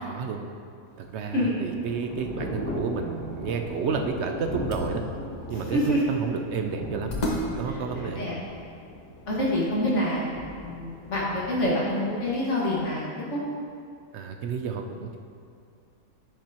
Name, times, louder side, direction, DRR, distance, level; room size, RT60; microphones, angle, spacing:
voice 1, 0.0-0.5 1.0-5.0 5.5-7.2 7.5-8.4 14.1-15.2, right 5 dB, 65° right, 5 dB, 0.7 m, -31 dB
Thunder / Rain, 0.9-12.8, left 1 dB, 75° left, 1.7 m, -38 dB
sound 1, 3.6-8.9, left 1 dB, 35° left, 0.9 m, -36 dB
voice 2, 7.7-8.4 9.3-10.2 10.6-13.4, left 1 dB, 55° left, -6 dB, 2.1 m, -27 dB
10.0 x 7.4 x 2.9 m, 2.4 s
omnidirectional pair, 1.5 m